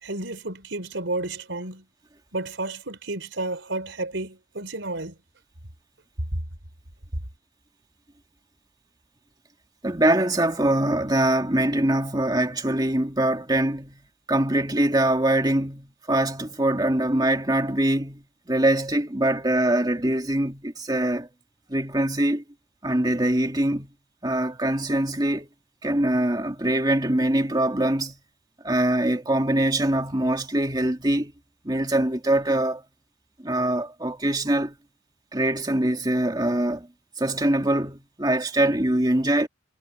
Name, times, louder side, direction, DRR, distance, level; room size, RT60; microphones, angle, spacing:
voice 1, 0.0-1.8 2.3-5.2, right 2 dB, 90° right, 4.0 m, -31 dB
voice 2, 9.8-14.0 14.3-21.3 21.7-22.4 22.8-23.9 24.2-25.5 25.8-28.2 28.6-31.3 31.6-32.8 33.4-34.8 35.3-36.9 37.2-39.5, right 1 dB, 20° right, 2.4 m, -23 dB
head